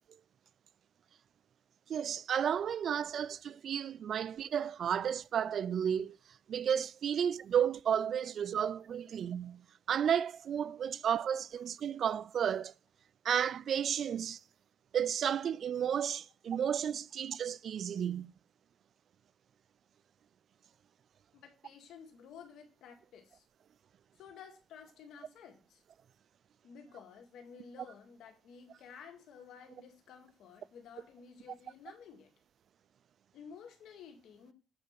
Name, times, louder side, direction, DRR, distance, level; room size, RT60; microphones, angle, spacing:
voice 1, 1.9-6.2 6.5-9.6 9.9-12.7 13.2-14.4 14.9-18.3, right 8 dB, 60° right, 0.3 m, -32 dB
voice 2, 21.3-23.5 24.2-25.8 26.6-32.3 33.3-34.5, left 7 dB, 80° left, 2.0 m, -53 dB
8.7 x 4.6 x 5.9 m
cardioid pair, 90°, 0 cm